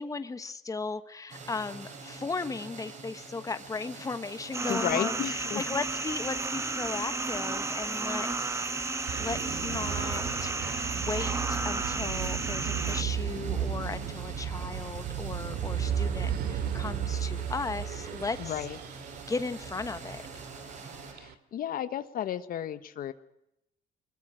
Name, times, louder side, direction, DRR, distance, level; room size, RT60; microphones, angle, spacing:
voice 1, 0.0-10.5 10.9-18.5 19.3-20.2, left 4 dB, 20° left, 10 dB, 1.4 m, -36 dB
sound 1, 1.3-21.1, right 4 dB, 45° right, 5.8 m, -45 dB
sound 2, 4.5-13.0, right 3 dB, 15° right, 1.3 m, -33 dB
voice 2, 4.6-5.6 18.4-18.8 21.1-23.1, left 10 dB, 60° left, 12 dB, 1.3 m, -33 dB
sound 3, 9.1-21.3, right 9 dB, 70° right, 2.2 m, -34 dB
24.0 x 22.0 x 6.4 m, 0.83 s
cardioid pair, 110°, 17 cm